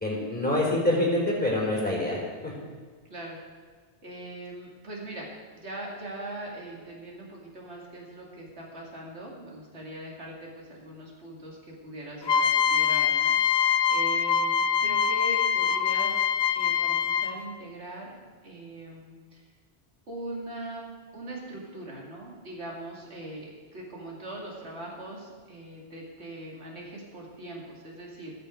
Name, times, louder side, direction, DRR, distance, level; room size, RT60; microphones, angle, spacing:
voice 1, 0.0-2.5, left 1 dB, 10° left, -4 dB, 3.8 m, -26 dB
voice 2, 3.0-3.4 4.0-13.3 13.9-16.2 16.5-18.1 18.4-19.4 20.1-20.8 21.1-28.3, right 1 dB, 75° right, -3 dB, 2.8 m, -41 dB
sound 1, 12.3-17.5, left 7 dB, 60° left, 0.5 m, -24 dB
18.5 x 6.7 x 5.1 m, 1.5 s
omnidirectional pair, 1.1 m